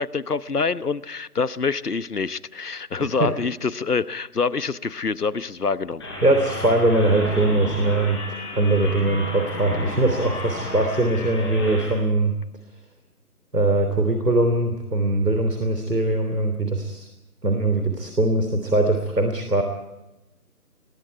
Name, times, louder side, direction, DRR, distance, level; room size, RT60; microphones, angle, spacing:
voice 1, 0.0-6.0, left 4 dB, 75° left, 17 dB, 1.0 m, -26 dB
sound 1, 6.0-11.9, left 1 dB, 15° left, 7.8 m, -32 dB
voice 2, 6.2-8.2 8.5-12.3 13.5-17.1 17.4-19.6, right 2 dB, 85° right, 5 dB, 3.3 m, -21 dB
27.5 x 21.5 x 4.7 m, 0.95 s
figure-of-eight pair, 170°, 46 cm